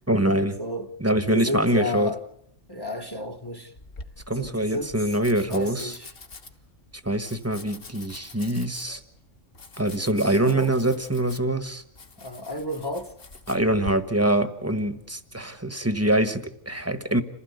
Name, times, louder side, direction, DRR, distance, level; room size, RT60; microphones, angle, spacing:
voice 1, 0.1-0.6 1.0-2.1 4.3-6.0 7.0-9.0 9.8-11.8 13.5-17.2, right 1 dB, 15° right, 1.3 m, -24 dB
voice 2, 0.6-0.9 1.3-2.2 2.7-3.7 4.4-4.9 5.5-6.1 10.2-10.7 12.2-13.1, left 1 dB, 20° left, 1.2 m, -32 dB
Domestic sounds home sounds, 3.8-13.9, left 2 dB, 50° left, 1.6 m, -45 dB
28.0 x 16.0 x 8.2 m
omnidirectional pair, 1.2 m